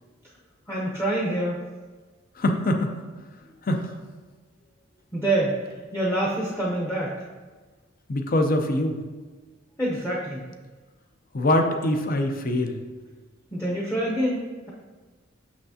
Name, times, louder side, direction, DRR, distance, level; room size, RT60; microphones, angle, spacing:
voice 1, 0.7-1.6 5.1-5.6 5.9-7.2 9.8-10.4 13.5-14.7, right 1 dB, 10° left, -5 dB, 0.7 m, -26 dB
voice 2, 2.4-2.9 3.7-3.8 8.1-9.0 11.3-12.8, left 1 dB, 45° left, 4 dB, 0.6 m, -23 dB
6.5 x 5.8 x 2.8 m, 1.4 s
head